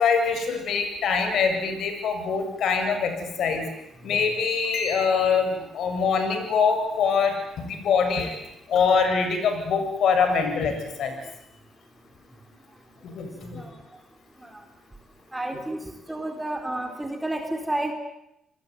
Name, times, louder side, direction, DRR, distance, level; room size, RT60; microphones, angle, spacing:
voice 1, 0.0-3.7 4.0-8.4 8.7-10.7 11.0-11.2 13.1-13.6, left 5 dB, 70° left, 6 dB, 7.8 m, -24 dB
voice 2, 15.3-17.9, right 1 dB, 10° right, 4 dB, 4.3 m, -31 dB
29.0 x 21.0 x 9.6 m, 0.84 s
cardioid pair, 90°, 0 cm